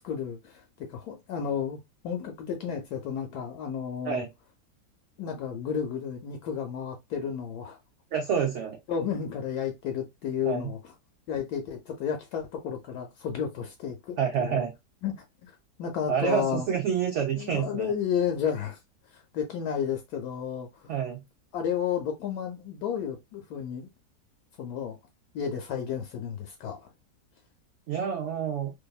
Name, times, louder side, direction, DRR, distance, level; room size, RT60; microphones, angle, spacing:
voice 1, 0.0-4.2 5.2-7.8 8.9-10.8 11.3-14.7 15.0-15.5 15.8-16.7 17.4-18.8 19.1-20.9 21.5-23.9 24.6-25.0 25.3-26.9, left 8 dB, 75° left, 1.1 m, -32 dB
voice 2, 8.1-8.8 10.4-10.7 14.2-14.7 16.1-18.0 20.9-21.2 27.9-28.7, right 7 dB, 80° right, 0.6 m, -28 dB
2.7 x 2.5 x 2.3 m
omnidirectional pair, 1.8 m